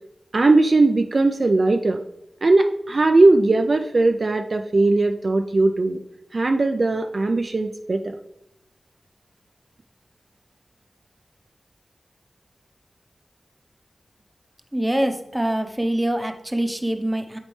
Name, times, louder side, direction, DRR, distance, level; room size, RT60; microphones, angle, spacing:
voice 1, 0.3-2.0 2.4-6.0 6.3-8.2, right 2 dB, 55° right, 5 dB, 0.4 m, -19 dB
voice 2, 14.7-17.4, right 1 dB, 15° right, 6 dB, 0.8 m, -24 dB
8.4 x 4.1 x 3.2 m, 0.82 s
wide cardioid pair, 60°, 0 cm